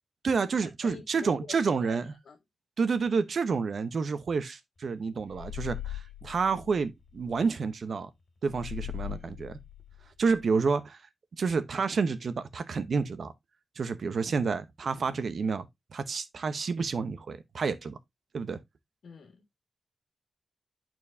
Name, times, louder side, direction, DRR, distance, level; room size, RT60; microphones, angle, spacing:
voice 1, 0.2-2.1 2.8-8.1 8.4-9.6 10.2-11.0 11.4-13.3 13.8-15.7 15.9-18.0 18.3-18.6, right 5 dB, 60° right, 0.9 m, -29 dB
voice 2, 0.8-2.0 2.3-2.4 19.0-19.4, left 6 dB, 80° left, 1.7 m, -45 dB
sound 1, 5.3-7.4 8.4-10.5, left 11 dB, 40° left, 2.6 m, -40 dB
11.0 x 4.6 x 2.7 m
wide cardioid pair, 130°, 0 cm